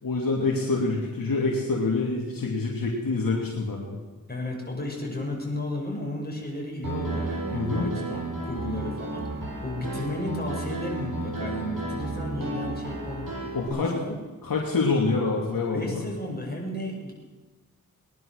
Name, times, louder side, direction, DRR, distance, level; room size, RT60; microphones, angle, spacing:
voice 1, 0.0-4.0 7.5-7.9 13.5-13.9 14.4-16.0, left 3 dB, 65° left, -1 dB, 2.6 m, -26 dB
voice 2, 4.3-9.3 9.6-13.3 13.7-14.1 15.7-17.1, left 1 dB, 25° left, -1 dB, 6.0 m, -33 dB
Piano, 6.8-13.7, right 2 dB, 65° right, 7.4 m, -33 dB
20.0 x 11.0 x 6.5 m, 1.3 s
cardioid pair, 60°, 36 cm